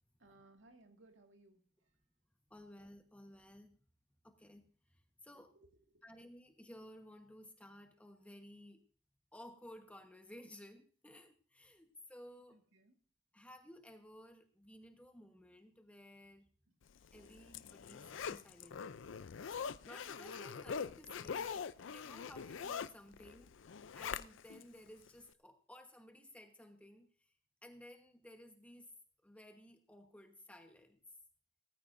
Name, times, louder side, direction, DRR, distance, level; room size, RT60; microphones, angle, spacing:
voice 1, 0.2-1.9 5.3-6.0 12.5-13.0 17.2-17.3, right 2 dB, 80° right, 4 dB, 2.1 m, -65 dB
voice 2, 2.5-3.8 4.2-5.6 6.0-8.8 9.3-12.6 13.3-16.5 17.1-19.0 19.5-23.6 23.9-27.3 27.6-28.9 29.2-31.0, left 1 dB, 5° left, 5 dB, 1.2 m, -56 dB
Zipper (clothing), 17.0-24.6 25.1-25.2, left 6 dB, 90° left, 0.5 m, -43 dB
17.5 x 14.0 x 2.6 m, 0.41 s
head